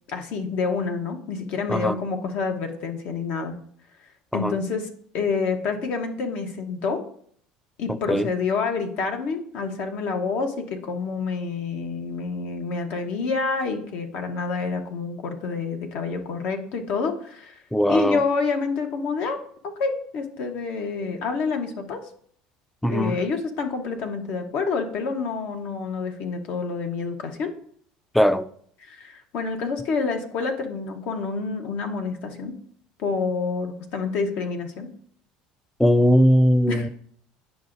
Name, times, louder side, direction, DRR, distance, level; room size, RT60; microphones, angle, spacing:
voice 1, 0.1-3.6 4.3-4.9 5.1-7.0 7.8-17.6 17.9-22.0 22.9-27.5 28.8-32.5 33.0-34.9 36.7-36.9, left 4 dB, 65° left, 1.0 m, -28 dB
voice 2, 17.7-18.2 22.8-23.2 28.1-28.5 35.8-36.9, equal, 5° left, 0.3 m, -19 dB
9.2 x 5.9 x 2.6 m
supercardioid pair, 105°, 3 cm